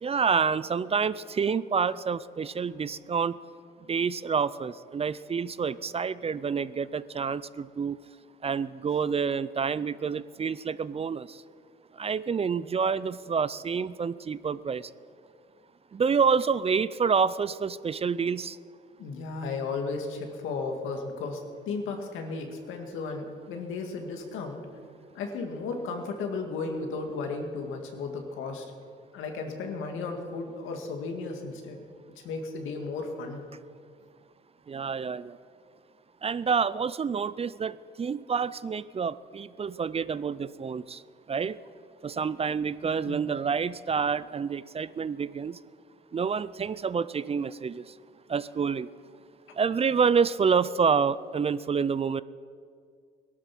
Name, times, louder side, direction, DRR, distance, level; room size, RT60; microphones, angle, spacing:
voice 1, 0.0-3.4 3.9-8.0 8.4-11.4 11.9-14.9 15.9-18.6 34.7-35.4 36.2-41.0 41.3-41.6 42.0-45.6 46.1-47.9 48.3-48.9 49.6-52.2, right 6 dB, 30° right, 17 dB, 0.4 m, -28 dB
voice 2, 19.0-24.7 25.1-28.7 29.1-31.8 32.2-33.4 43.0-43.2, left 4 dB, 90° left, 4 dB, 2.1 m, -34 dB
18.5 x 12.5 x 6.0 m, 2.2 s
cardioid pair, 90°, 20 cm